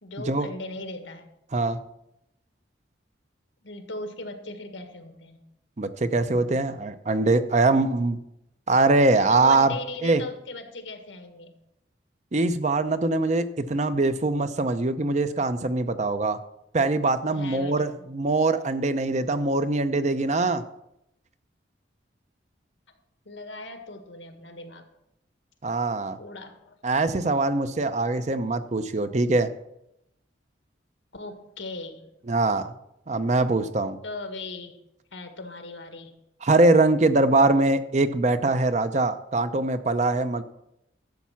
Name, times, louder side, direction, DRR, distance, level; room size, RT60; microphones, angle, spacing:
voice 1, 0.0-1.3 3.6-5.4 9.3-11.6 17.2-18.2 23.2-24.9 26.2-26.8 31.1-32.1 34.0-34.8 35.1-36.2, left 2 dB, 90° left, 6 dB, 1.7 m, -39 dB
voice 2, 5.8-8.2 8.7-9.7 10.0-10.2 12.3-16.4 16.7-20.6 25.6-26.2 26.8-29.5 32.3-32.7 33.1-34.0 36.4-40.4, right 2 dB, 40° right, 11 dB, 0.6 m, -23 dB
12.0 x 7.3 x 5.8 m, 0.83 s
head